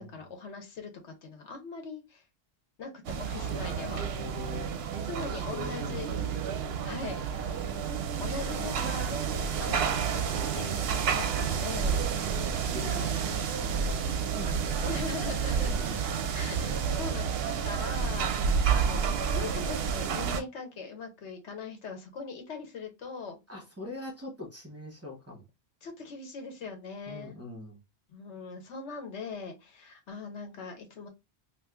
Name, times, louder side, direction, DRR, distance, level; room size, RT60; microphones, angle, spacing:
voice 1, 0.0-2.2 2.8-4.1 5.1-6.1 6.8-7.2 8.2-12.3 12.9-13.3 14.8-15.8 16.3-18.3 18.7-19.0 19.3-23.4 25.8-27.4 28.1-31.1, left 4 dB, 90° left, 1.2 m, -41 dB
sound 1, 3.0-20.4, right 7 dB, 70° right, 0.8 m, -30 dB
voice 2, 3.3-4.7 5.3-6.6 7.3-8.0 8.6-9.6 10.0-10.3 12.4-15.0 15.3-15.4 15.7-16.1 17.6-17.7 23.5-25.4 27.1-27.8, left 2 dB, 15° right, 1.0 m, -44 dB
2.6 x 2.5 x 3.4 m
omnidirectional pair, 1.1 m